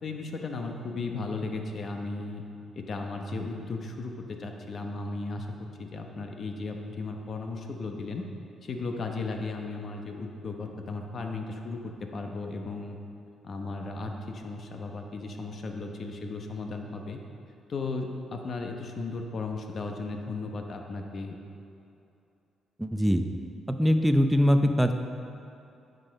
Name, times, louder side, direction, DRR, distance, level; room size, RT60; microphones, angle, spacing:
voice 1, 0.0-2.4 2.7-5.5 5.8-8.2 8.6-13.0 13.4-17.2 17.7-21.4, left 3 dB, 50° left, 3 dB, 0.9 m, -35 dB
voice 2, 22.8-23.2 23.7-24.9, equal, 5° right, 6 dB, 0.6 m, -22 dB
9.6 x 5.4 x 5.2 m, 2.7 s
cardioid pair, 90°, 0 cm